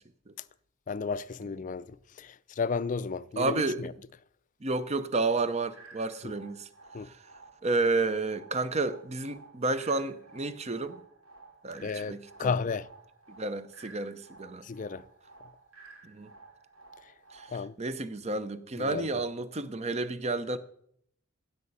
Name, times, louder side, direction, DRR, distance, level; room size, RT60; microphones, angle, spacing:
voice 1, 0.9-3.9 6.2-6.3 6.9-7.1 11.8-12.9 14.6-15.0 17.0-17.1 17.5-17.8 18.8-19.1, left 5 dB, 40° left, 0.4 m, -33 dB
voice 2, 3.4-3.8 4.6-6.7 7.0-7.2 7.6-11.0 11.6-12.5 13.3-14.6 16.0-16.3 17.3-20.6, right 3 dB, 30° right, 0.7 m, -31 dB
sound 1, 5.7-17.7, right 3 dB, 80° right, 2.6 m, -54 dB
16.0 x 7.7 x 5.5 m
head